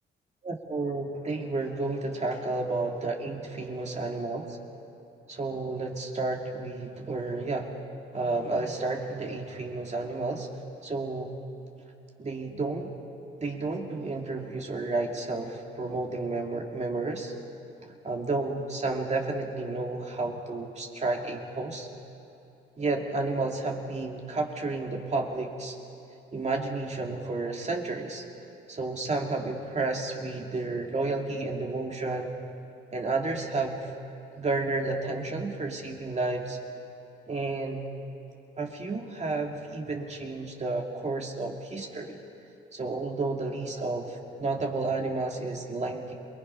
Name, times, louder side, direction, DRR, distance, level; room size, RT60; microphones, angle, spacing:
voice 1, 0.4-4.6 5.3-7.7 8.1-10.5 10.8-11.3 12.2-12.9 13.4-17.3 18.0-21.9 22.8-25.8 26.3-28.2 28.7-32.3 32.9-33.9 34.4-36.6 37.3-37.8 38.6-42.2 42.7-46.1, right 3 dB, 35° right, 1 dB, 2.5 m, -31 dB
28.0 x 20.0 x 5.5 m, 2.8 s
cardioid pair, 90°, 20 cm